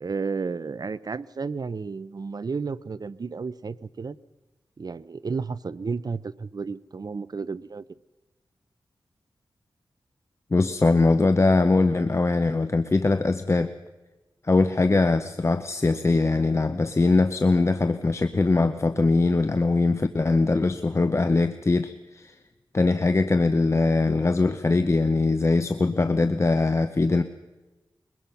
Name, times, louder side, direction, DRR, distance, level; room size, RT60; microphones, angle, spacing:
voice 1, 0.0-4.2 4.8-7.8, right 4 dB, 50° right, 17 dB, 0.6 m, -32 dB
voice 2, 10.5-13.7 14.4-22.4 22.7-27.2, left 3 dB, 35° left, 10 dB, 0.8 m, -22 dB
22.5 x 21.5 x 5.9 m, 1.2 s
wide cardioid pair, 85°, 8 cm